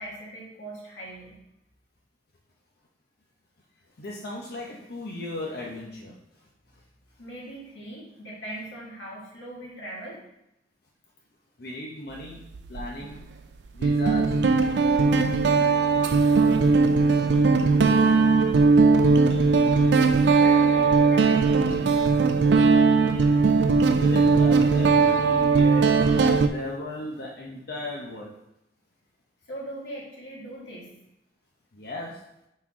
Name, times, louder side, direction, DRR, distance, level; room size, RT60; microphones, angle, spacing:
voice 1, 0.0-1.4 7.2-10.2 20.4-22.0 29.5-30.9, right 1 dB, 85° left, -5 dB, 2.1 m, -39 dB
voice 2, 4.0-6.2 11.6-12.4 12.7-13.3 13.7-14.4 16.8-18.6 20.0-20.1 23.9-28.3 31.7-32.2, left 1 dB, 55° left, -3 dB, 0.7 m, -37 dB
Guitar, 12.5-12.8 13.8-26.5, right 4 dB, 65° right, 0.4 m, -19 dB
6.0 x 4.3 x 3.7 m, 0.86 s
head